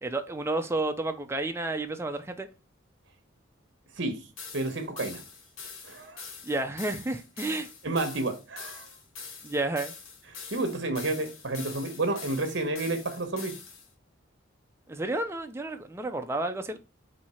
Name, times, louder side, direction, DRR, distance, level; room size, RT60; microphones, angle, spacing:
voice 1, 0.0-2.5 6.4-7.7 9.4-9.9 14.9-16.8, right 2 dB, 15° right, 0.4 m, -31 dB
voice 2, 4.0-4.3 4.5-5.2 5.8-6.3 7.8-8.9 10.5-13.5, right 2 dB, 60° right, 0.9 m, -30 dB
sound 1, 4.4-13.9, left 5 dB, 80° left, 1.0 m, -44 dB
4.3 x 2.7 x 4.2 m
head